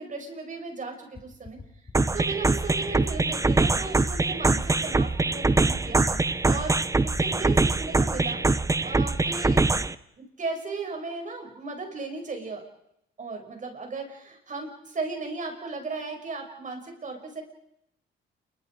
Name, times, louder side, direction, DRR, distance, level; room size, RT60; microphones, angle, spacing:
voice 1, 0.0-1.6 2.1-6.0 6.5-8.4 8.8-9.6 10.4-12.6 13.2-17.4, right 3 dB, 40° right, 3 dB, 6.6 m, -36 dB
sound 1, 1.1-7.2, left 4 dB, 35° left, 7.4 m, -43 dB
sound 2, 1.9-9.9, right 3 dB, 15° right, 0.8 m, -23 dB
28.5 x 24.5 x 5.0 m, 0.78 s
cardioid pair, 90°, 20 cm